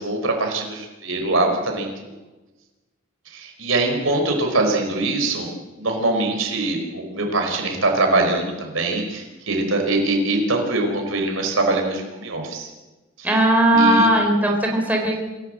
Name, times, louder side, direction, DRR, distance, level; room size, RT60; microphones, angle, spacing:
voice 1, 0.0-2.2 3.3-5.5 5.8-12.7 13.2-13.3 13.7-14.1, right 2 dB, 70° right, 3 dB, 5.1 m, -23 dB
voice 2, 13.2-15.2, right 1 dB, 10° right, 1 dB, 4.2 m, -17 dB
26.5 x 16.5 x 7.8 m, 1.1 s
head